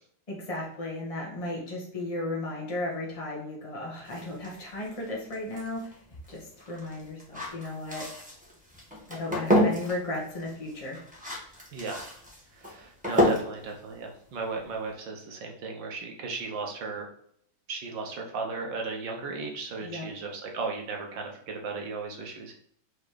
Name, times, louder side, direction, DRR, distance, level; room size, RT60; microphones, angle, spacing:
voice 1, 0.3-6.0 6.3-8.1 9.1-11.0 19.8-20.1, left 2 dB, 15° left, -3 dB, 1.6 m, -35 dB
sound 1, 4.0-14.9, equal, 5° right, 1.9 m, -31 dB
voice 2, 11.7-12.1 12.6-17.1 17.7-22.5, right 4 dB, 65° right, 1 dB, 1.6 m, -35 dB
4.8 x 4.1 x 5.0 m, 0.65 s
omnidirectional pair, 2.4 m